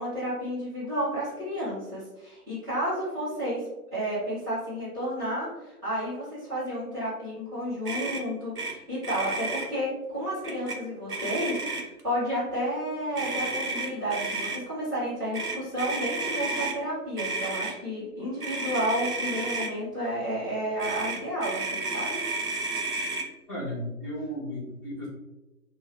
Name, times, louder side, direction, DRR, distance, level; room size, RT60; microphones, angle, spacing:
voice 1, 0.0-22.2, equal, 10° right, -15 dB, 1.2 m, -31 dB
Motor vehicle (road), 7.9-8.2 8.6-8.7 9.0-9.7 10.4-10.8 11.1-12.0 13.2-14.6 15.3-16.8 17.2-17.7 18.4-19.7 20.8-23.3, right 3 dB, 80° right, 0.7 m, -32 dB
voice 2, 23.5-25.1, equal, 15° left, -13 dB, 1.1 m, -34 dB
2.7 x 2.7 x 2.9 m, 1.0 s
figure-of-eight pair, 145°, 45 cm